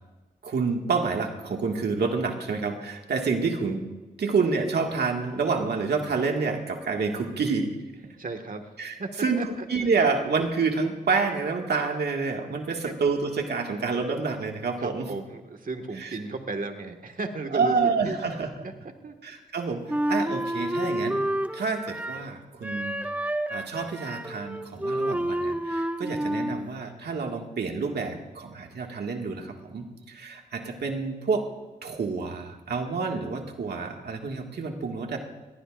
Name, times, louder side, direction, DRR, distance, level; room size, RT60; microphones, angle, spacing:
voice 1, 0.4-3.8 4.2-7.7 8.8-9.4 9.7-15.1 16.0-16.1 17.5-18.7 19.2-21.2 21.5-23.0 23.5-31.4 31.8-35.2, right 4 dB, 75° right, 2 dB, 2.0 m, -28 dB
voice 2, 8.2-8.7 9.0-9.7 12.6-12.9 14.8-18.2 18.6-18.7 19.0-19.1, right 3 dB, 55° right, 5 dB, 1.9 m, -34 dB
Wind instrument woodwind instrument, 19.9-22.3 22.6-26.7, right 1 dB, 10° right, 0.8 m, -29 dB
22.5 x 18.5 x 2.6 m, 1.2 s
cardioid pair, 45°, 17 cm